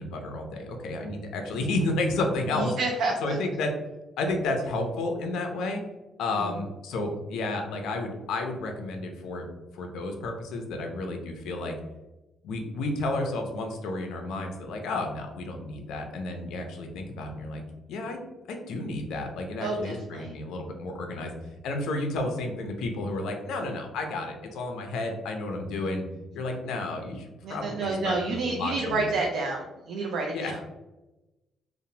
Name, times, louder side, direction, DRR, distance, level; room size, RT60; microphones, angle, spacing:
voice 1, 0.0-2.7 3.2-3.7 4.2-5.8 6.2-9.5 9.7-11.8 12.4-17.6 17.9-21.3 21.6-26.0 26.3-29.1 30.3-30.6, left 2 dB, 85° left, 4 dB, 0.4 m, -31 dB
voice 2, 2.5-3.4 6.3-6.6 19.6-20.3 27.4-30.6, right 3 dB, 65° right, 0 dB, 0.4 m, -29 dB
2.9 x 2.0 x 2.6 m, 1.0 s
cardioid pair, 160°, 0 cm